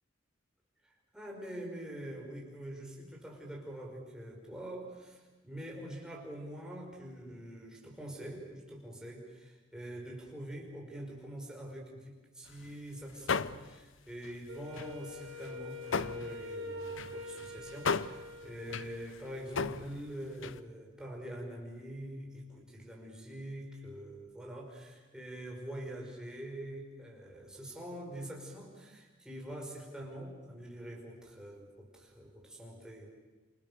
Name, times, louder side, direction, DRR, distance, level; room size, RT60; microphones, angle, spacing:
voice 1, 0.8-33.1, right 1 dB, 5° right, -1 dB, 5.6 m, -45 dB
sound 1, 12.5-12.7 13.0-13.9 14.2-16.5 16.8-20.6, left 5 dB, 75° left, 0.8 m, -37 dB
Wind instrument woodwind instrument, 14.5-19.1, left 1 dB, 80° right, 3.6 m, -44 dB
28.0 x 27.5 x 7.0 m, 1.3 s
head